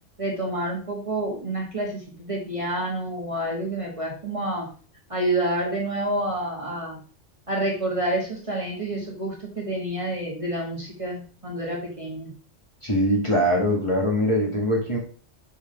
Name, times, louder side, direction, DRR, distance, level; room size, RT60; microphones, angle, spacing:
voice 1, 0.2-4.7 5.1-7.0 7.5-12.3, right 1 dB, 25° right, -2 dB, 1.6 m, -28 dB
voice 2, 12.8-15.0, equal, 25° left, -2 dB, 2.0 m, -22 dB
5.8 x 4.8 x 5.2 m, 0.40 s
omnidirectional pair, 1.3 m